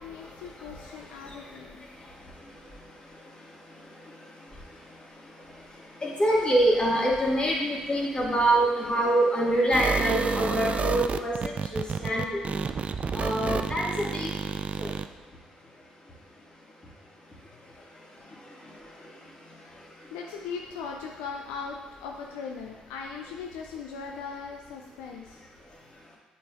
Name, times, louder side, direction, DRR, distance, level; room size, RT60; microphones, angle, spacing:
voice 1, 0.0-1.9 20.1-25.4, left 5 dB, 75° left, 1 dB, 0.4 m, -39 dB
voice 2, 6.0-11.3 11.7-12.4 13.2-13.8 14.1-14.3 14.8-14.9, right 1 dB, 30° left, -3 dB, 1.9 m, -24 dB
sound 1, 9.7-15.1, right 5 dB, 40° right, 0.3 m, -30 dB
7.9 x 5.2 x 2.5 m, 1.2 s
hypercardioid pair, 45°, 3 cm